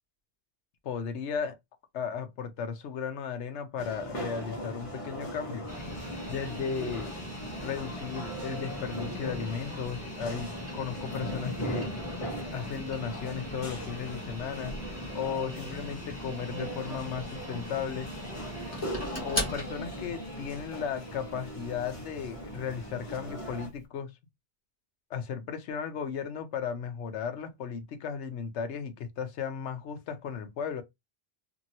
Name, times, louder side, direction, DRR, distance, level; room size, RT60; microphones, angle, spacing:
voice 1, 0.8-1.6 1.9-5.8 6.3-7.1 7.6-11.9 12.5-18.1 19.2-24.1 25.1-30.8, left 7 dB, 85° left, 1.0 m, -35 dB
sound 1, 3.8-23.7, equal, 30° left, 1.0 m, -39 dB
sound 2, 5.7-23.8, left 1 dB, 15° left, 1.7 m, -41 dB
2.9 x 2.6 x 2.7 m
omnidirectional pair, 1.1 m